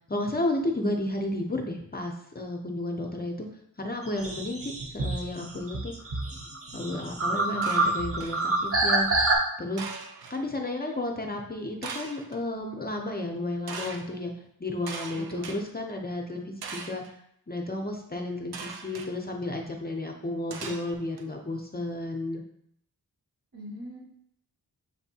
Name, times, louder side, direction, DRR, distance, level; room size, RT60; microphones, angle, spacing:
voice 1, 0.1-3.5 3.8-5.9 6.7-9.2 9.6-9.9 10.3-14.3 14.6-17.0 17.5-22.4, left 1 dB, 25° left, 2 dB, 0.5 m, -32 dB
sound 1, 4.1-9.4, right 2 dB, 40° right, 0.6 m, -27 dB
voice 2, 7.4-7.9 15.1-15.5 23.5-24.0, right 1 dB, 65° right, -4 dB, 1.8 m, -41 dB
sound 2, 7.6-8.4 9.8-10.4 11.8-12.4 13.7-14.0 14.9-15.6 16.6-17.1 18.5-19.1 20.5-21.2, right 5 dB, 80° right, 0.6 m, -39 dB
6.6 x 2.6 x 2.7 m, 0.71 s
wide cardioid pair, 135°, 38 cm